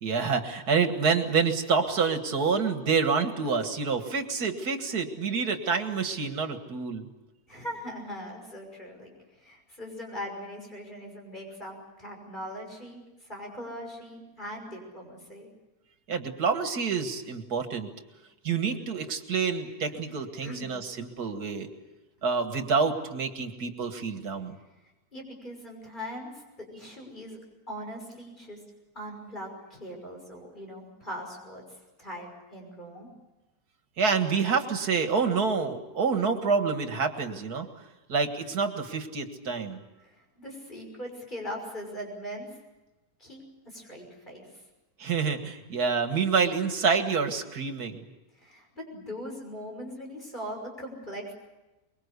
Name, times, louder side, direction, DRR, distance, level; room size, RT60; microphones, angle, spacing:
voice 1, 0.0-7.1 16.1-17.9 18.4-21.7 22.2-24.6 34.0-37.7 38.1-39.8 45.0-48.1, right 5 dB, 85° right, 7 dB, 2.3 m, -27 dB
voice 2, 7.5-15.5 20.4-20.7 25.1-26.4 26.7-28.6 28.9-33.1 40.0-42.5 43.2-44.6 48.4-51.3, equal, 30° left, 0 dB, 6.2 m, -40 dB
24.5 x 23.0 x 8.2 m, 1.1 s
omnidirectional pair, 1.6 m